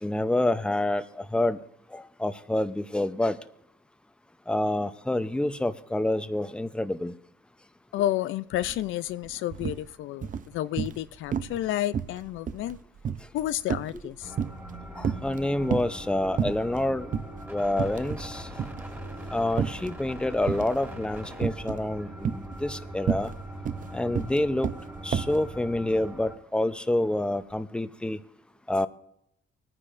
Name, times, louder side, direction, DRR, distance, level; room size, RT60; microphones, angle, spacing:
voice 1, 0.0-1.6 1.9-3.4 4.5-7.1 15.0-17.1 17.5-18.5 19.3-23.3 23.9-24.7 25.0-28.2 28.7-28.9, left 1 dB, 5° left, 0.6 m, -27 dB
voice 2, 7.9-12.8 13.3-14.3 23.8-24.1, left 13 dB, 80° left, 0.4 m, -31 dB
sound 1, 8.6-8.8 9.1-9.8 10.2-11.0 11.3-11.6 11.9-14.7 15.0-16.0 16.4-16.8 17.1-17.3 17.7-18.3 18.6-19.9 20.5-20.9 21.4-21.9 22.2-25.4, right 7 dB, 40° right, 0.6 m, -31 dB
sound 2, 14.2-26.4, right 1 dB, 10° right, 2.2 m, -41 dB
19.5 x 9.8 x 2.6 m
cardioid pair, 90°, 20 cm